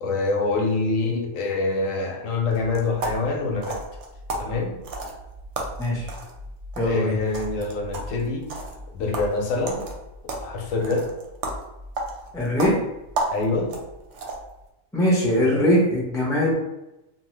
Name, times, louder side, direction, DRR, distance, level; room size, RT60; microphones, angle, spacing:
voice 1, 0.0-3.8 4.4-4.8 6.8-8.5 8.9-9.8 10.4-11.1 13.3-13.7, left 3 dB, 75° left, 1 dB, 1.0 m, -25 dB
sound 1, 2.5-14.6, right 2 dB, 65° right, 0.8 m, -34 dB
voice 2, 5.8-6.1 6.8-7.2 12.3-12.8 14.9-16.5, equal, 5° left, -4 dB, 0.4 m, -21 dB
2.8 x 2.2 x 3.1 m, 0.95 s
omnidirectional pair, 1.4 m